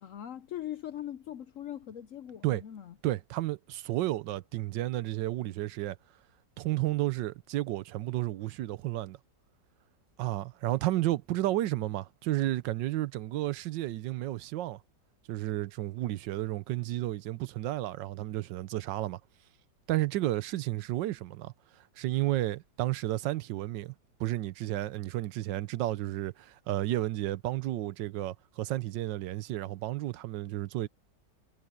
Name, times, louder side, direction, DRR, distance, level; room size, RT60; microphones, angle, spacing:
voice 1, 0.0-2.9, left 11 dB, 65° left, 0.8 m, -41 dB
voice 2, 3.0-6.0 6.6-9.2 10.2-14.8 15.3-19.2 19.9-21.5 22.0-23.9 24.2-30.9, right 15 dB, 85° right, 1.4 m, -32 dB
omnidirectional pair, 1.9 m